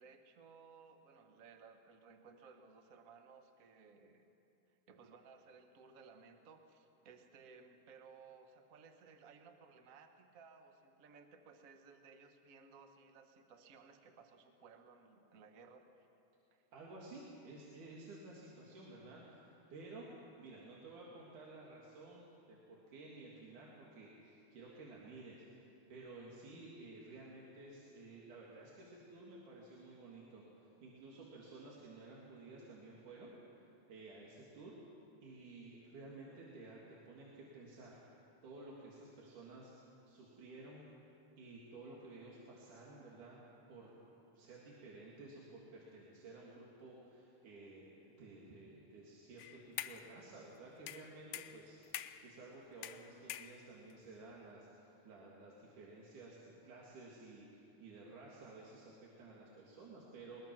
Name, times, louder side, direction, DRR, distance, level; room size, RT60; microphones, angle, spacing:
voice 1, 0.0-4.3 4.7-16.1 16.5-16.6, right 5 dB, 65° right, 6 dB, 0.8 m, -60 dB
voice 2, 16.7-20.1 20.4-33.3 33.6-34.7 35.2-38.0 38.4-40.9 41.4-43.4 43.7-43.9 44.3-60.4, right 2 dB, 85° right, -4 dB, 3.5 m, -54 dB
sound 1, 49.4-50.1 50.9-52.3 52.8-53.9, left 12 dB, 75° left, 1.6 m, -46 dB
21.0 x 21.0 x 6.0 m, 2.8 s
omnidirectional pair, 3.5 m